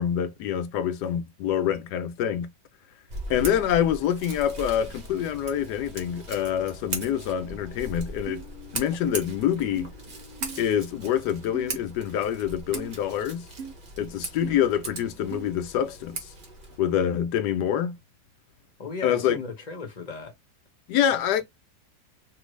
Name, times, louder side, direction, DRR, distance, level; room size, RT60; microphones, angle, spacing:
voice 1, 0.0-2.5 3.3-8.4 8.7-9.9 10.6-13.5 14.0-16.3 16.8-18.0 19.0-19.4 20.9-21.4, left 10 dB, 75° left, 1.2 m, -26 dB
Scissors, 3.1-16.8, right 2 dB, 40° right, 0.8 m, -39 dB
sound 1, 7.0-12.7, left 6 dB, 55° left, 1.0 m, -53 dB
sound 2, 8.3-8.4 9.1-9.2 9.8-9.9 10.4-10.6 11.5-11.8 12.7-12.9 13.6-13.7 14.4-14.5 15.3-15.5, right 6 dB, 70° right, 0.7 m, -37 dB
voice 2, 18.8-20.3 21.1-21.4, left 4 dB, 30° left, 0.8 m, -36 dB
3.1 x 2.5 x 3.1 m
omnidirectional pair, 1.8 m